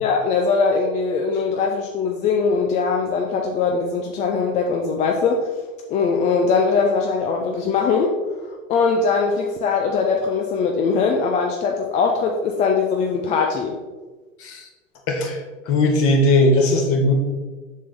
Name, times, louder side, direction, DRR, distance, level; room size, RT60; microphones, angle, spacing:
voice 1, 0.0-5.5 5.9-8.2 8.5-13.8, left 5 dB, 20° left, 2 dB, 0.4 m, -21 dB
voice 2, 15.1-17.1, left 2 dB, 35° left, 1 dB, 1.7 m, -18 dB
7.1 x 6.3 x 3.5 m, 1.3 s
figure-of-eight pair, 95°, 40 cm